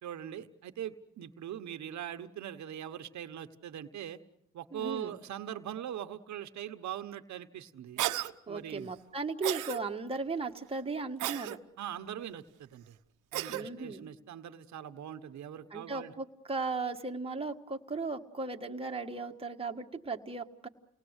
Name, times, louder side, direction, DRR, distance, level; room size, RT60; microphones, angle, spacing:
voice 1, 0.0-4.2 4.5-8.0 8.5-8.9 11.8-13.0 13.3-16.1, right 10 dB, 70° right, 8 dB, 1.2 m, -41 dB
voice 2, 4.7-5.2 8.5-11.6 13.5-14.1 15.7-20.7, right 3 dB, 20° right, 3 dB, 1.6 m, -36 dB
Cough, 8.0-8.3 9.4-9.8 11.2-11.6 13.3-13.6, right 15 dB, 90° right, 1.1 m, -33 dB
29.0 x 19.0 x 8.1 m, 0.83 s
cardioid pair, 90°, 30 cm